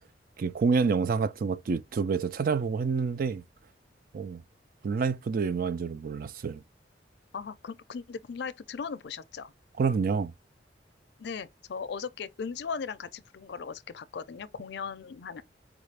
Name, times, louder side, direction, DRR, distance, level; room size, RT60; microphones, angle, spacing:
voice 1, 0.4-3.4 4.1-4.4 4.8-6.6 9.8-10.3, right 5 dB, 50° right, 0.4 m, -28 dB
voice 2, 7.3-9.5 11.2-15.4, left 5 dB, 65° left, 0.4 m, -38 dB
4.8 x 2.4 x 3.2 m
head